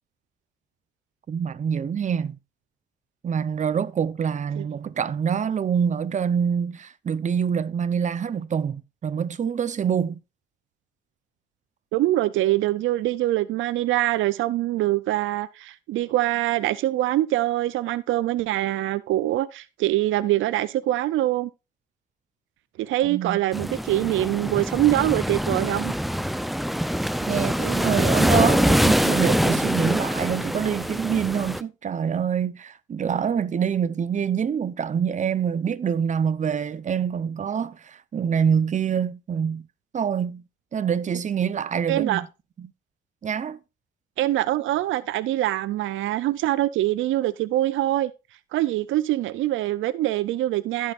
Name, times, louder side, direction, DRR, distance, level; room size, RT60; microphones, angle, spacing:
voice 1, 1.3-2.4 3.2-10.2 23.0-23.4 27.2-39.7 39.9-40.4 40.7-42.3 42.6-42.7 43.2-43.6, right 7 dB, 40° right, 0.7 m, -25 dB
voice 2, 11.9-21.5 22.8-25.9 41.9-42.2 44.2-48.1 48.5-50.9, right 15 dB, 85° right, 0.5 m, -24 dB
sound 1, 23.5-31.6, equal, ahead, 0.5 m, -24 dB
16.5 x 5.6 x 2.4 m
cardioid pair, 90°, 20 cm